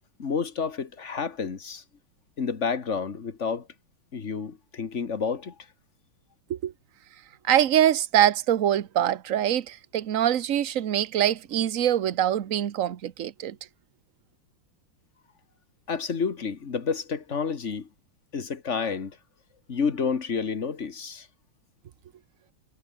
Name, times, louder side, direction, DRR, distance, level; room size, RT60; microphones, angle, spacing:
voice 1, 0.2-1.8 2.4-3.7 4.1-5.5 15.9-17.9 18.3-19.2 19.7-21.3, left 5 dB, 35° left, 1.8 m, -29 dB
voice 2, 7.4-13.6, right 11 dB, 50° right, 1.1 m, -24 dB
omnidirectional pair, 2.3 m